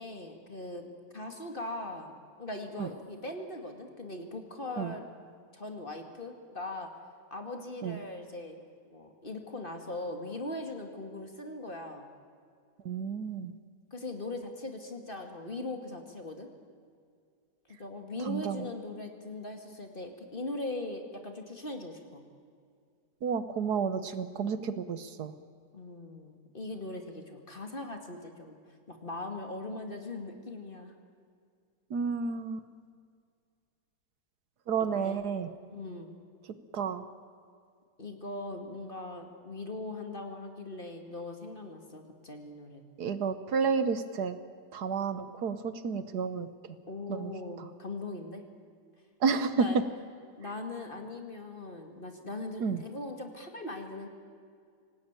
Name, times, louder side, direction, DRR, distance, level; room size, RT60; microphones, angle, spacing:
voice 1, 0.0-5.1 5.5-6.9 7.3-8.6 8.9-12.1 13.9-16.5 17.7-22.2 25.7-28.6 28.9-30.9 35.0-35.2 35.7-36.1 38.0-42.8 46.9-48.4 49.6-49.8 50.4-54.1, left 2 dB, 30° left, 4 dB, 2.5 m, -40 dB
voice 2, 12.8-13.5 18.3-18.7 23.2-25.3 31.9-32.7 34.7-35.5 36.7-37.0 43.0-44.4 44.7-46.5 47.1-47.3 49.2-49.7 52.6-52.8, right 6 dB, 70° right, 12 dB, 1.6 m, -31 dB
26.0 x 18.5 x 9.0 m, 2.2 s
omnidirectional pair, 1.8 m